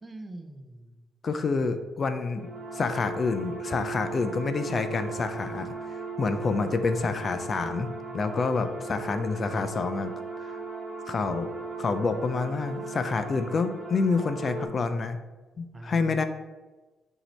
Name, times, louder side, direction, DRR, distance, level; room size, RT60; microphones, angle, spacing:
voice 1, 0.0-1.0 8.5-9.2 15.7-16.2, right 1 dB, 25° right, 6 dB, 0.6 m, -44 dB
voice 2, 1.2-2.5 2.7-10.1 10.4-10.6 11.1-11.5 11.8-15.2 15.6-16.2, left 4 dB, 40° left, 9 dB, 0.3 m, -28 dB
sound 1, 2.4-14.7, right 4 dB, 55° right, 1.1 m, -37 dB
5.8 x 2.7 x 3.2 m, 1.2 s
cardioid pair, 90°, 0 cm